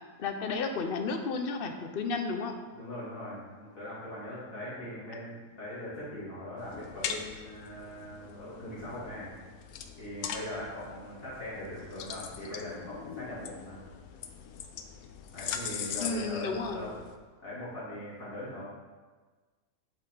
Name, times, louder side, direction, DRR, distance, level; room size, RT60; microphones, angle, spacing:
voice 1, 0.2-2.5 16.0-16.9, left 4 dB, 50° left, 6 dB, 0.8 m, -32 dB
voice 2, 2.7-9.3 10.0-13.8 15.3-16.9 17.4-18.6, left 1 dB, 70° left, -10 dB, 3.0 m, -40 dB
sound 1, 6.6-17.2, left 7 dB, 90° left, 1.1 m, -41 dB
7.9 x 5.9 x 3.8 m, 1.4 s
omnidirectional pair, 1.5 m